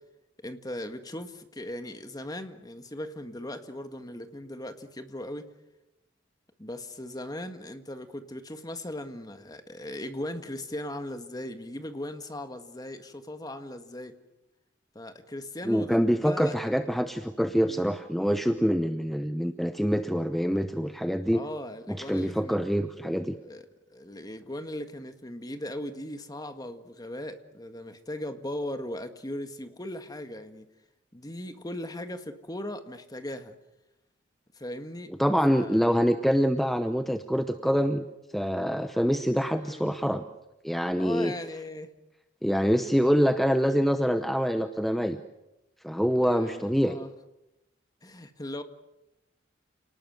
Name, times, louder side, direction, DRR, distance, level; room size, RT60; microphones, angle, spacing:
voice 1, 0.4-5.5 6.6-14.2 14.9-16.6 17.6-17.8 21.3-22.6 23.4-30.7 31.1-33.5 34.5-35.1 35.5-35.8 39.6-39.9 41.0-41.9 46.2-47.1 48.0-48.6, left 1 dB, 20° left, 8 dB, 1.7 m, -38 dB
voice 2, 15.6-21.4 21.9-23.4 35.2-38.1 38.3-40.2 40.6-41.3 42.4-45.2 45.8-47.0, equal, ahead, 8 dB, 0.8 m, -25 dB
29.0 x 19.0 x 7.9 m, 0.94 s
head